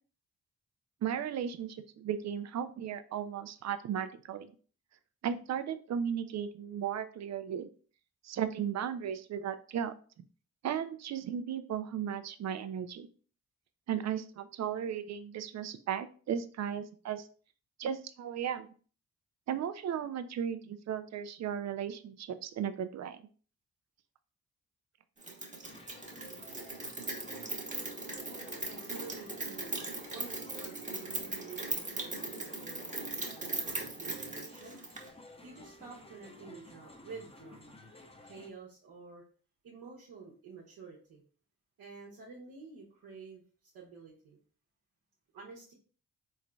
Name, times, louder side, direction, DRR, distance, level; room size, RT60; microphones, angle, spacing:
voice 1, 1.0-4.5 5.2-7.7 8.2-9.9 10.6-13.1 13.9-17.3 17.8-18.7 19.5-23.2, right 8 dB, 50° right, 11 dB, 0.4 m, -35 dB
Rain, 25.2-35.1, right 2 dB, 20° right, 1.0 m, -39 dB
sound 1, 25.6-38.5, left 2 dB, 15° left, 0.7 m, -53 dB
voice 2, 28.3-37.9 38.2-39.2 39.6-41.2 41.8-44.4 45.3-45.7, right 5 dB, 65° right, -3 dB, 1.0 m, -50 dB
3.7 x 3.1 x 2.3 m, 0.42 s
hypercardioid pair, 40°, 36 cm